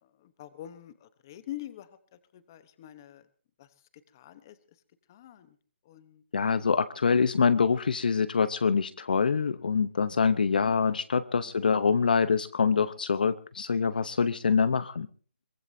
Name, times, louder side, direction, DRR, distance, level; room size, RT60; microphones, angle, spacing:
voice 1, 0.0-3.3 3.6-3.7 4.1-4.6 5.1-5.6 5.8-6.2 9.8-9.9 14.6-14.7, left 13 dB, 20° left, 13 dB, 0.9 m, -45 dB
voice 2, 6.3-15.1, left 5 dB, 50° left, 15 dB, 0.7 m, -25 dB
23.0 x 20.0 x 2.7 m, 0.40 s
hypercardioid pair, 175°, 6 cm